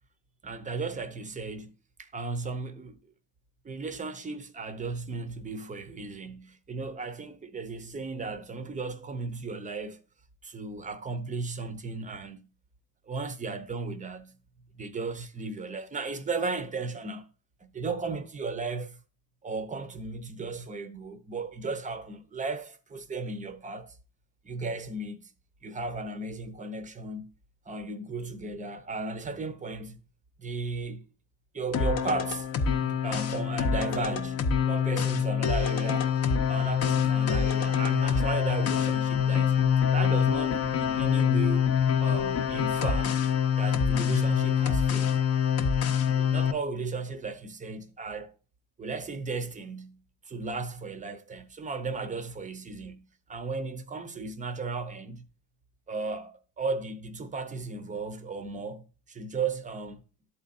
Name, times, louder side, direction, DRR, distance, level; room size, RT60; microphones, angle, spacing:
voice 1, 0.4-1.7 2.0-3.0 3.6-10.0 10.4-12.5 13.1-14.4 14.8-17.3 17.6-19.0 19.4-24.0 24.4-25.3 25.6-27.3 27.7-30.0 30.4-31.1 31.5-32.5 32.8-36.2 36.5-39.6 39.9-43.2 43.5-45.2 46.1-48.3 48.8-50.0 50.2-53.0 53.3-55.3 55.9-60.0, right 3 dB, 15° right, 0.7 m, -35 dB
sound 1, 31.7-46.5, left 7 dB, 35° left, 0.7 m, -25 dB
12.0 x 4.2 x 2.5 m
supercardioid pair, 105°, 45 cm